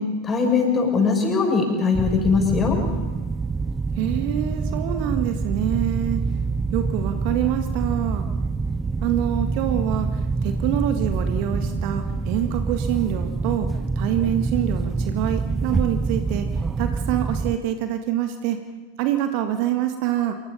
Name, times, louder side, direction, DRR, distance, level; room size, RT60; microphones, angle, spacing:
voice 1, 0.2-2.8, left 5 dB, 20° left, 1 dB, 7.0 m, -20 dB
sound 1, 1.9-17.6, right 4 dB, 15° right, 0.7 m, -26 dB
voice 2, 3.9-6.3 6.7-8.3 9.0-16.5 16.8-18.6 19.0-20.4, right 11 dB, 45° right, 6 dB, 1.7 m, -26 dB
27.5 x 22.0 x 5.6 m, 1.3 s
figure-of-eight pair, 90°, 0 cm